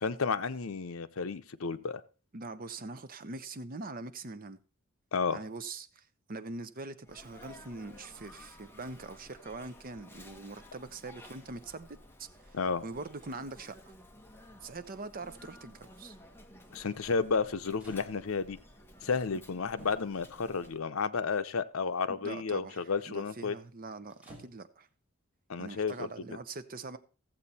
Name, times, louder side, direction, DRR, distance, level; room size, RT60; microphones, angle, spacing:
voice 1, 0.0-2.0 5.1-5.4 12.5-12.8 16.7-18.6 19.0-23.6 25.5-26.1, left 5 dB, 75° left, 0.7 m, -32 dB
voice 2, 2.3-4.6 5.3-13.9 14.6-16.1 22.1-24.9 25.6-27.0, right 3 dB, 45° right, 0.8 m, -43 dB
Sneeze, 7.0-20.8, left 1 dB, 10° left, 1.2 m, -54 dB
sound 1, 17.3-17.4 17.7-18.5 19.8-20.3 21.3-21.4 24.1-25.0 25.8-26.0, right 1 dB, 5° right, 2.9 m, -54 dB
15.0 x 7.5 x 4.2 m
head